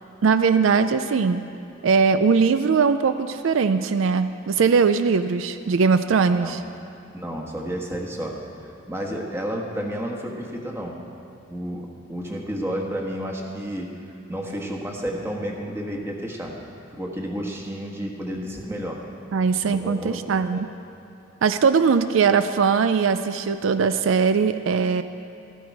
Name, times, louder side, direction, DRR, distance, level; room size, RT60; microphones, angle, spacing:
voice 1, 0.2-1.4 1.8-6.6 19.3-20.7 21.4-25.0, right 5 dB, 75° right, 11 dB, 0.4 m, -20 dB
voice 2, 7.1-11.0 11.5-11.8 12.1-14.0 14.3-16.6 16.9-19.0 19.6-20.6, equal, 15° right, 0 dB, 1.3 m, -31 dB
13.5 x 13.0 x 4.7 m, 2.6 s
head